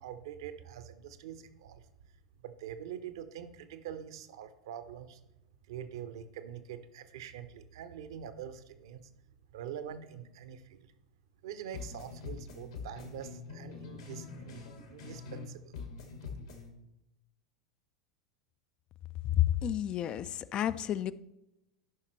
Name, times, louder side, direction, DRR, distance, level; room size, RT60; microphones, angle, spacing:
voice 1, 0.0-1.8 2.4-5.2 5.7-9.0 9.5-10.9 11.4-15.8, right 9 dB, 60° right, 11 dB, 0.7 m, -44 dB
sound 1, 11.7-15.5 15.7-16.7, left 5 dB, 70° left, 1.8 m, -44 dB
voice 2, 19.2-21.1, left 12 dB, 35° left, 15 dB, 0.3 m, -30 dB
14.0 x 5.7 x 3.1 m, 0.89 s
figure-of-eight pair, 85°, 3 cm